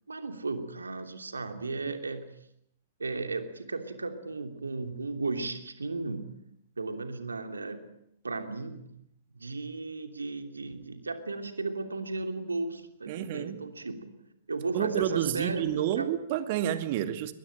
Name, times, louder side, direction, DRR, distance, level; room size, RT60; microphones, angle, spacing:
voice 1, 0.1-2.3 3.0-6.4 6.8-7.8 8.2-8.9 9.3-14.1 14.5-16.1, right 3 dB, 85° right, 6 dB, 3.0 m, -35 dB
voice 2, 13.1-13.6 14.7-17.3, right 11 dB, 50° right, 9 dB, 2.3 m, -29 dB
22.0 x 21.5 x 8.9 m, 0.76 s
figure-of-eight pair, 110°, 0 cm